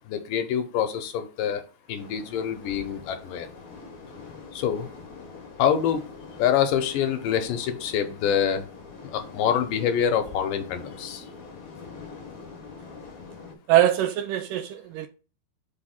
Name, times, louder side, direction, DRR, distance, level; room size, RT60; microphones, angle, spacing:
voice 1, 0.1-1.6 1.9-3.5 4.5-4.9 5.6-6.0 6.4-8.7 9.1-11.3, left 8 dB, 75° left, 2.1 m, -25 dB
sound 1, 2.0-13.5, left 4 dB, 50° left, 1.9 m, -44 dB
voice 2, 13.7-15.1, right 12 dB, 90° right, 1.9 m, -22 dB
5.4 x 3.5 x 5.7 m
omnidirectional pair, 4.3 m